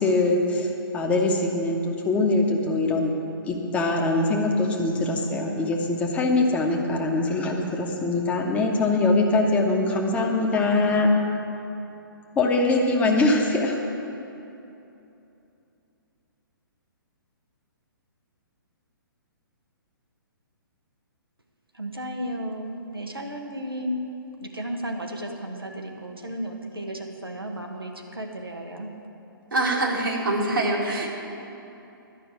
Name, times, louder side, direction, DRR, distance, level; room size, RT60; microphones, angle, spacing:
voice 1, 0.0-3.1 3.5-11.1 12.4-13.8, left 2 dB, 10° left, 0 dB, 1.1 m, -23 dB
voice 2, 21.7-24.0 24.4-28.9, equal, 85° right, 1 dB, 1.3 m, -34 dB
voice 3, 29.5-31.1, right 2 dB, 70° right, -2 dB, 2.4 m, -24 dB
11.5 x 6.1 x 9.1 m, 2.8 s
figure-of-eight pair, 125°, 12 cm